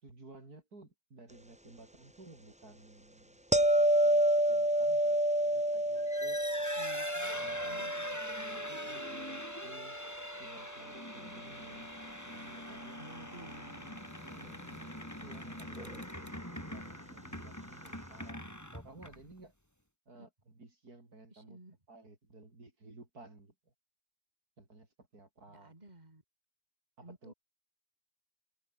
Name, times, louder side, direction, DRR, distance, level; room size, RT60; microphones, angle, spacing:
voice 1, 0.0-6.4 7.3-10.0 10.4-11.9 12.2-13.0 13.4-13.8 14.0-14.6 15.2-19.5 20.1-21.6 21.9-23.7 24.6-25.7 27.0-27.3, right 2 dB, 85° right, 5.5 m, -55 dB
sound 1, 3.5-10.5 15.8-15.9, right 1 dB, 5° right, 1.0 m, -30 dB
sound 2, 6.0-19.4, equal, 10° left, 5.3 m, -43 dB
voice 2, 6.8-7.3 7.6-8.2 13.0-14.9 20.1-20.3 21.3-21.8 25.5-26.2 27.0-27.3, right 2 dB, 25° right, 4.2 m, -54 dB
omnidirectional pair, 1.6 m